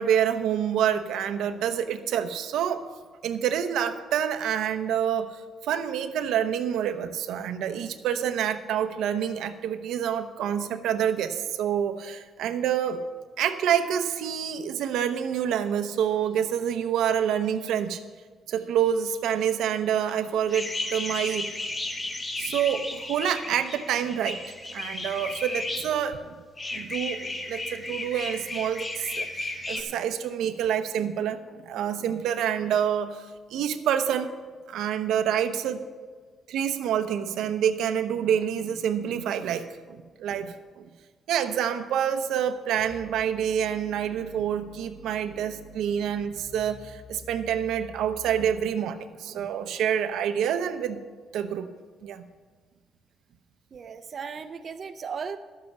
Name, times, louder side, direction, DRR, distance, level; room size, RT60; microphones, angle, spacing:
voice 1, 0.0-2.8 3.2-13.0 13.4-18.0 18.5-21.5 22.4-24.4 24.7-26.3 26.7-33.2 33.5-34.3 34.7-35.8 36.5-40.8 41.3-51.1 51.3-51.7 52.0-52.2, right 9 dB, 85° right, 8 dB, 0.7 m, -27 dB
sound 1, 20.5-25.9 26.6-29.8, left 2 dB, 30° left, 1.4 m, -34 dB
sound 2, 42.8-48.7, right 1 dB, 75° left, 4.4 m, -48 dB
voice 2, 53.7-55.4, right 6 dB, 50° right, 8 dB, 0.6 m, -36 dB
11.5 x 7.5 x 6.9 m, 1.5 s
cardioid pair, 90°, 0 cm